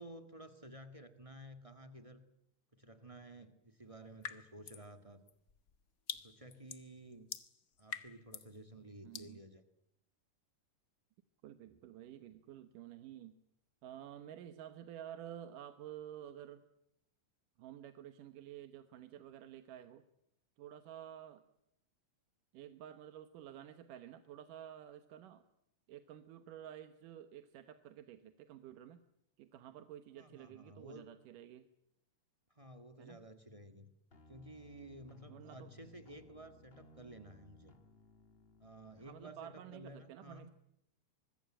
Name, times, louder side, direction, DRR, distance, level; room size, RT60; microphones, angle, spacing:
voice 1, 0.0-2.2 2.7-5.2 6.1-7.3 7.8-9.6 30.1-31.1 32.5-33.9 34.3-37.8 38.6-40.5, right 1 dB, 35° right, 9 dB, 0.5 m, -53 dB
sound 1, 4.2-4.9 5.3-8.6 9.1-9.3, left 7 dB, 75° left, 0.8 m, -46 dB
voice 2, 9.0-9.4 11.4-13.4 13.8-16.6 17.6-20.0 20.6-21.4 22.5-25.4 25.9-29.0 29.4-31.7 33.0-33.2 35.3-35.7 39.0-40.5, right 11 dB, 75° right, 10 dB, 2.7 m, -51 dB
sound 2, 34.1-39.3, left 2 dB, 40° left, 0.8 m, -61 dB
25.0 x 21.5 x 8.9 m, 0.76 s
omnidirectional pair, 3.8 m